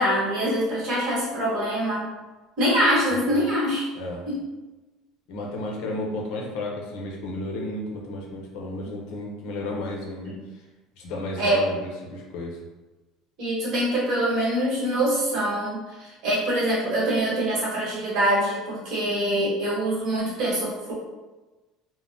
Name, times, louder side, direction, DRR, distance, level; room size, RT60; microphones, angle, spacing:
voice 1, 0.0-2.1 2.6-3.9 4.3-4.4 10.2-10.4 11.4-11.6 13.4-20.9, right 1 dB, 50° right, -6 dB, 1.2 m, -24 dB
voice 2, 3.9-4.3 5.3-10.6 11.0-12.6, left 1 dB, 65° left, -1 dB, 0.6 m, -33 dB
3.4 x 2.0 x 2.6 m, 1.2 s
cardioid pair, 165°, 0 cm